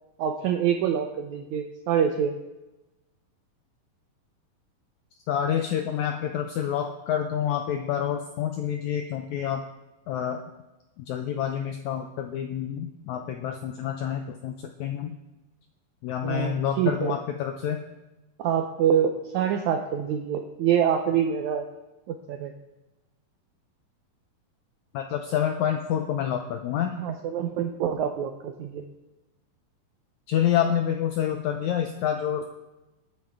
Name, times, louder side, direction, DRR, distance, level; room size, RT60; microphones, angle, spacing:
voice 1, 0.2-2.3 16.2-17.2 18.4-21.7 22.1-22.5 27.0-28.8, right 8 dB, 80° right, 5 dB, 1.7 m, -26 dB
voice 2, 5.3-9.6 10.1-10.4 11.0-14.5 14.8-15.2 16.0-17.8 24.9-27.0 30.3-32.4, left 9 dB, 85° left, 5 dB, 1.7 m, -28 dB
20.0 x 8.9 x 3.5 m, 1.0 s
omnidirectional pair, 4.1 m